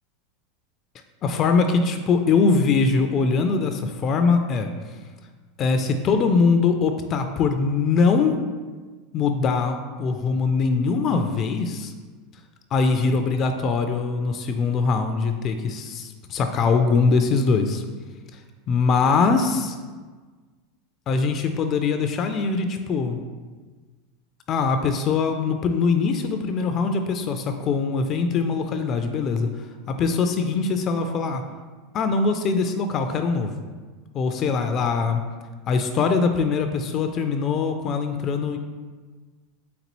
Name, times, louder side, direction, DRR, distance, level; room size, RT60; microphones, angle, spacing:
voice 1, 1.2-4.7 5.6-8.3 9.1-11.9 12.7-17.8 18.7-19.8 21.1-23.2 24.5-31.4 31.9-33.5 34.1-35.2 35.7-38.6, left 4 dB, 35° left, 7 dB, 0.3 m, -22 dB
4.0 x 3.6 x 3.0 m, 1.4 s
supercardioid pair, 135°, 0 cm